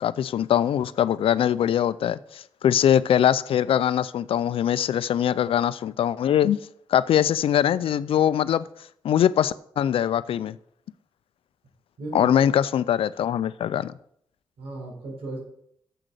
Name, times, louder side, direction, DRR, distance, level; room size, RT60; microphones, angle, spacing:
voice 1, 0.0-6.6 6.9-8.7 9.0-10.6 12.1-13.9, left 10 dB, 75° left, 0.4 m, -22 dB
voice 2, 12.0-12.4 14.6-15.4, right 2 dB, 90° right, 4.0 m, -35 dB
7.6 x 6.1 x 6.7 m
supercardioid pair, 45°, 9 cm